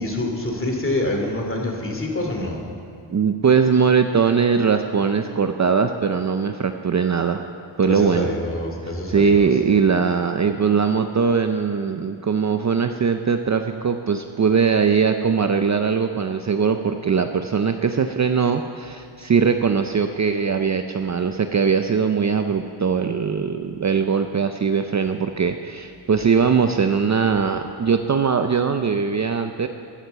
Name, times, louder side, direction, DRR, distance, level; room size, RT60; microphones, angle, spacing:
voice 1, 0.0-2.6 7.8-9.5, left 1 dB, 25° left, 1 dB, 2.7 m, -26 dB
voice 2, 3.1-7.5 7.8-8.3 8.8-29.7, right 6 dB, 35° right, 7 dB, 0.6 m, -20 dB
14.5 x 10.0 x 7.0 m, 2.4 s
wide cardioid pair, 100°, 49 cm